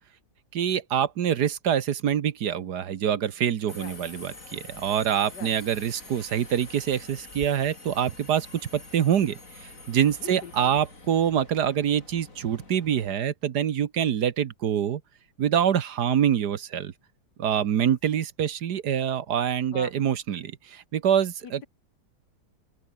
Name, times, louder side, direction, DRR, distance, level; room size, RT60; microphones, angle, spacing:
voice 1, 0.5-8.5 8.7-15.0 15.4-16.9 17.4-21.7, right 9 dB, 65° right, 1.6 m, -25 dB
Subway metro underground, 3.7-13.1, left 3 dB, 45° left, 4.8 m, -46 dB
voice 2, 10.2-10.7 19.7-19.9, left 7 dB, 65° left, 1.9 m, -41 dB
open air
omnidirectional pair, 2.0 m